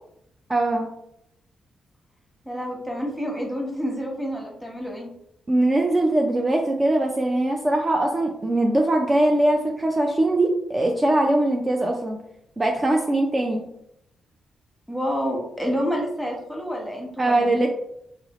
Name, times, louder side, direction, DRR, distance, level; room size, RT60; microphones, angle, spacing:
voice 1, 0.5-0.9 5.5-12.2 12.6-13.6 17.2-17.7, right 1 dB, 30° right, 1 dB, 0.4 m, -21 dB
voice 2, 2.4-5.1 14.9-17.7, equal, ahead, -1 dB, 1.1 m, -28 dB
2.6 x 2.0 x 3.0 m, 0.75 s
hypercardioid pair, 45°, 0 cm